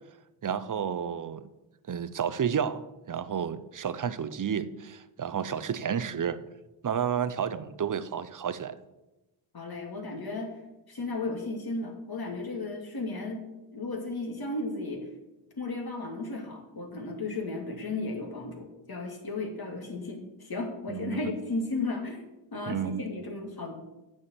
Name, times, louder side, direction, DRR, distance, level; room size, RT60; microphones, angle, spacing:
voice 1, 0.4-1.5 1.9-2.8 3.1-6.4 6.8-8.8 20.9-21.3 22.7-23.0, right 8 dB, 40° right, 0.7 m, -31 dB
voice 2, 9.5-10.5 10.9-13.4 13.7-15.1 15.6-22.2 22.5-23.9, left 3 dB, 50° left, 2.4 m, -34 dB
8.3 x 4.9 x 7.6 m
cardioid pair, 50°, 48 cm